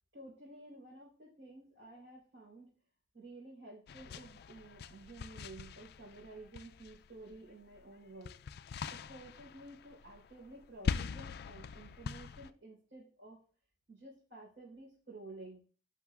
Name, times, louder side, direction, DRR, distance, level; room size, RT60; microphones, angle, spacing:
voice 1, 0.1-2.7 3.1-8.4 8.9-13.4 13.9-15.6, right 2 dB, 80° right, -7 dB, 4.0 m, -52 dB
sound 1, 3.9-7.4 7.7-12.5, left 6 dB, 55° left, 0.3 m, -42 dB
16.5 x 5.5 x 2.4 m, 0.42 s
head